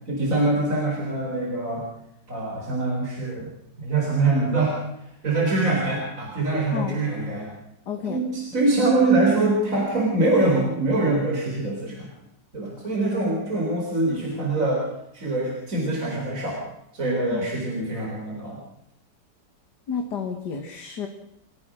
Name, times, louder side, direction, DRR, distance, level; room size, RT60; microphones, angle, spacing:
voice 1, 0.1-1.8 2.3-3.5 3.8-4.8 5.2-7.5 8.1-12.1 12.5-14.8 15.1-16.6 16.9-18.6, right 2 dB, 45° right, -1 dB, 4.6 m, -24 dB
voice 2, 7.9-8.2 12.8-13.3 17.3-17.5 19.9-21.1, left 6 dB, 70° left, 4 dB, 2.3 m, -31 dB
29.5 x 14.5 x 6.3 m, 0.79 s
omnidirectional pair, 1.9 m